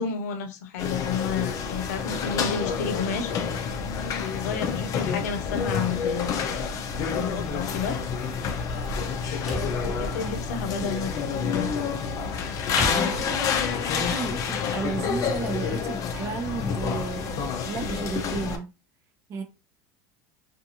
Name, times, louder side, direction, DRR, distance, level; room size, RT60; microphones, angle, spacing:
voice 1, 0.0-3.3 4.1-6.6 7.1-8.0 9.8-11.7, left 5 dB, 90° left, 0.7 m, -31 dB
sound 1, 0.8-18.6, left 6 dB, 40° left, 0.5 m, -28 dB
sound 2, 11.3-13.9, equal, 5° right, 1.1 m, -40 dB
voice 2, 12.9-18.7 19.3-19.4, right 5 dB, 35° right, 0.6 m, -34 dB
2.5 x 2.4 x 2.8 m
supercardioid pair, 125°, 8 cm